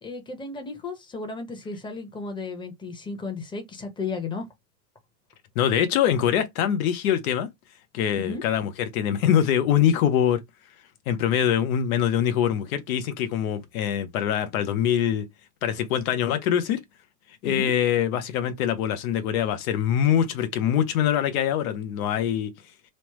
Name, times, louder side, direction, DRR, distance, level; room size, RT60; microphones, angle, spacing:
voice 1, 0.0-4.5 8.2-8.4 17.4-17.7, left 4 dB, 10° left, 0.8 m, -34 dB
voice 2, 5.6-7.5 7.9-10.4 11.1-15.3 15.6-16.8 17.4-22.5, left 9 dB, 75° left, 0.8 m, -23 dB
3.2 x 2.1 x 2.9 m
supercardioid pair, 120°, 43 cm